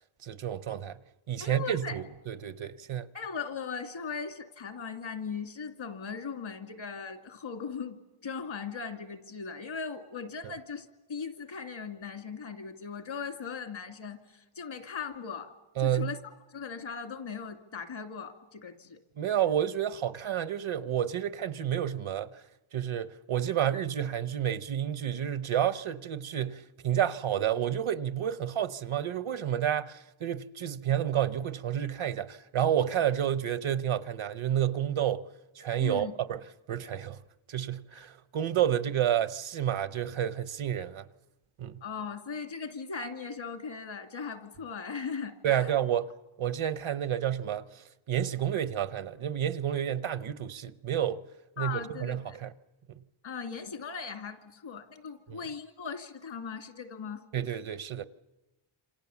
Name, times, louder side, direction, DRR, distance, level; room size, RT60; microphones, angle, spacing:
voice 1, 0.2-1.0 1.3-3.1 10.4-10.5 15.8-16.1 19.2-22.4 22.7-35.2 35.6-36.4 36.7-37.2 37.5-41.1 41.6-41.8 45.4-46.1 46.4-51.2 51.6-52.5 55.3-55.4 57.3-58.0, right 10 dB, 70° right, 0.9 m, -30 dB
voice 2, 1.4-2.0 3.1-15.5 15.8-16.2 16.5-19.0 35.8-36.1 41.8-45.7 51.6-52.4 53.2-57.2, left 5 dB, 70° left, 2.5 m, -39 dB
28.0 x 26.5 x 7.2 m
wide cardioid pair, 170°, 49 cm